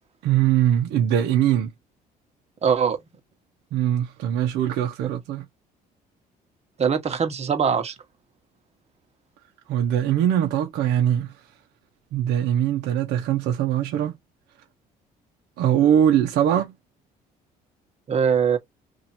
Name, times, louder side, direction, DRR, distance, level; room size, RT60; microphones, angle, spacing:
voice 1, 0.2-1.7 3.7-5.5 9.7-11.3 12.1-14.1 15.6-16.7, right 10 dB, 80° right, 0.8 m, -21 dB
voice 2, 2.6-3.0 6.8-7.9 18.1-18.6, right 7 dB, 40° right, 1.2 m, -21 dB
2.8 x 2.7 x 4.2 m
cardioid pair, 110°, 17 cm